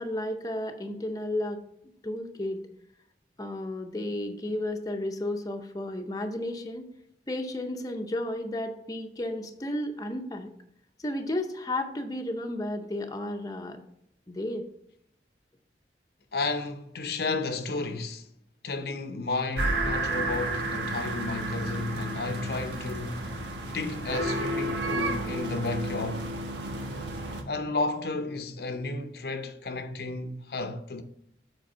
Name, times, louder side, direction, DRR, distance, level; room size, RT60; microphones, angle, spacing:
voice 1, 0.0-1.6 2.0-2.6 3.4-6.9 7.3-10.5 11.0-13.8 14.3-14.6, left 1 dB, 20° left, 0.6 m, -33 dB
voice 2, 16.3-18.3 18.6-23.2 23.7-26.3 27.5-31.0, left 3 dB, 60° left, 0.7 m, -32 dB
sound 1, 19.6-27.4, right 1 dB, 80° right, 1.3 m, -31 dB
7.7 x 4.6 x 5.4 m
head